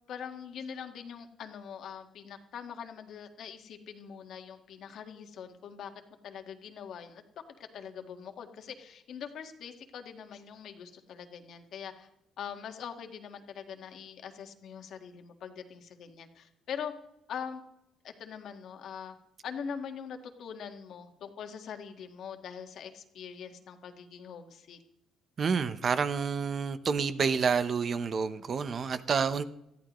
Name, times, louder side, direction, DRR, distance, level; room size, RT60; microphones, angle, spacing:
voice 1, 0.1-5.9 6.2-7.2 7.7-12.1 12.4-16.9 17.3-17.6 18.0-19.1 19.4-24.8, left 7 dB, 65° left, 5 dB, 1.6 m, -43 dB
voice 2, 25.4-29.5, right 6 dB, 40° right, 12 dB, 0.8 m, -29 dB
20.0 x 14.0 x 3.1 m, 0.85 s
cardioid pair, 125°, 0 cm